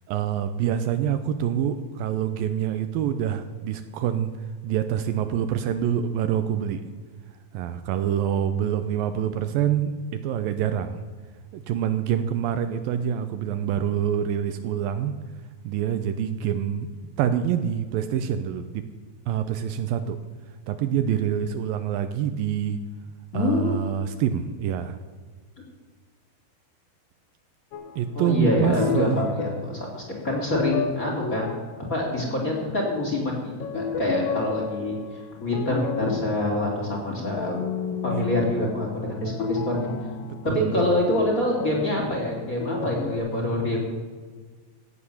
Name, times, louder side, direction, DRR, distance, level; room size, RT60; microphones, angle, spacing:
voice 1, 0.1-4.3 4.6-6.8 7.5-11.0 11.5-15.1 15.6-16.9 17.2-18.8 19.3-20.2 20.7-22.8 23.3-25.0 28.0-29.4 38.1-38.3 40.2-40.9 43.3-43.4, right 9 dB, 80° right, 9 dB, 2.3 m, -26 dB
voice 2, 23.3-23.7 28.1-31.5 31.9-37.5 38.0-39.9 40.5-43.8, left 1 dB, 25° left, -1 dB, 3.3 m, -26 dB
sound 1, 27.7-28.0 28.4-33.0 33.5-43.2, left 5 dB, 70° left, 2.6 m, -33 dB
16.0 x 8.6 x 7.1 m, 1.5 s
omnidirectional pair, 4.4 m